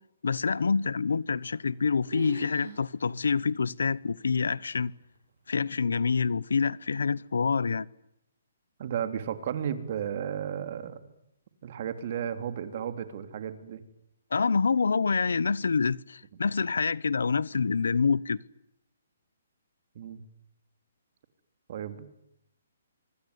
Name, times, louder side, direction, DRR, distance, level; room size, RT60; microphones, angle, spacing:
voice 1, 0.2-4.9 5.5-7.9 14.3-18.4, left 5 dB, 90° left, 1.0 m, -27 dB
sound 1, 1.3-1.8 2.1-2.8 3.2-3.3 3.9-4.0 4.8-5.2, right 5 dB, 60° right, 7.8 m, -41 dB
voice 2, 8.8-11.1 11.6-13.8 19.9-20.2 21.7-22.1, right 9 dB, 40° right, 3.2 m, -34 dB
25.0 x 25.0 x 9.7 m
hypercardioid pair, 165°, 0 cm